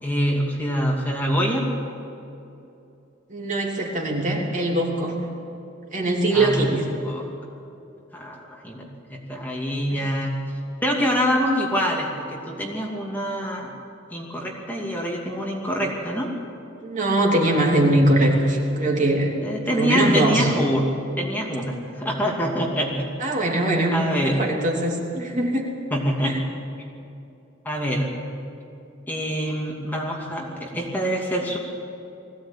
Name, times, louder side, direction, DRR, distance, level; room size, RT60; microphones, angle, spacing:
voice 1, 0.0-1.7 6.3-7.3 8.1-10.4 10.8-13.7 14.1-16.3 19.4-20.8 21.2-23.1 23.9-24.4 25.9-26.4 27.6-28.1 29.1-31.6, equal, 10° left, -2 dB, 2.6 m, -25 dB
voice 2, 3.3-5.3 5.9-6.8 16.8-20.5 23.2-25.7 26.2-26.4, right 1 dB, 40° right, 0 dB, 3.0 m, -22 dB
21.0 x 16.5 x 8.9 m, 2.7 s
head